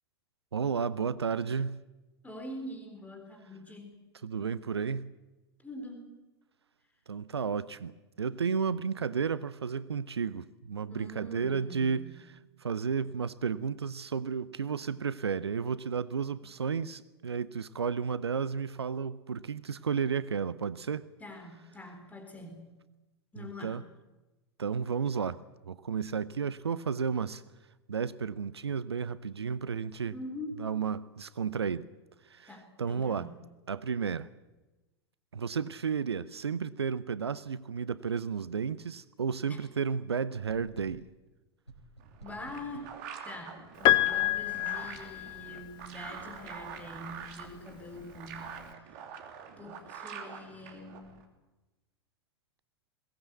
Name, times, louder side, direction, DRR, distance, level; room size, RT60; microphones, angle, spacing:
voice 1, 0.5-1.8 4.2-5.1 7.1-12.3 12.6-21.1 23.4-23.8 24.6-25.4 25.7-27.4 27.9-30.2 30.6-31.9 32.3-33.3 33.7-34.3 35.3-41.0, right 6 dB, 75° right, 17 dB, 0.7 m, -32 dB
voice 2, 2.2-4.0 5.6-6.2 10.9-12.2 21.2-22.6 23.3-23.8 30.1-30.7 32.5-33.4 39.5-39.6 42.2-42.9 43.2-48.6 48.9-49.1 49.6-51.2, left 1 dB, 10° left, 4 dB, 3.8 m, -44 dB
sound 1, 40.5-41.2 41.7-43.0, right 2 dB, 85° left, 3.9 m, -52 dB
sound 2, 42.0-51.2, right 7 dB, 45° right, 2.9 m, -45 dB
Piano, 43.8-45.8 47.1-47.2, left 16 dB, 35° left, 1.0 m, -27 dB
22.0 x 18.5 x 8.2 m, 1.1 s
figure-of-eight pair, 90°, 14 cm